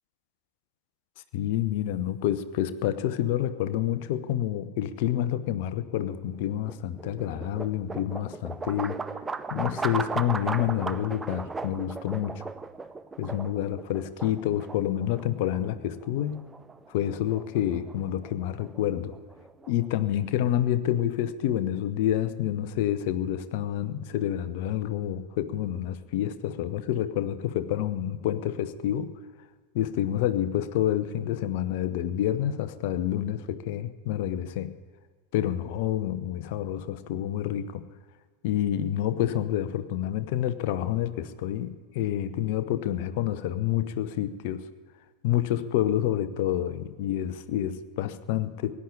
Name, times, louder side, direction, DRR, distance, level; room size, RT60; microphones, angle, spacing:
voice 1, 1.3-9.0 9.5-12.4 13.2-16.4 16.9-19.1 19.7-29.1 29.7-34.7 35.3-37.8 38.4-44.7 45.2-48.7, left 11 dB, 50° left, 13 dB, 0.8 m, -28 dB
sound 1, 6.3-20.4, right 4 dB, 15° right, 0.5 m, -37 dB
17.0 x 9.8 x 8.6 m, 1.5 s
figure-of-eight pair, 90°, 0 cm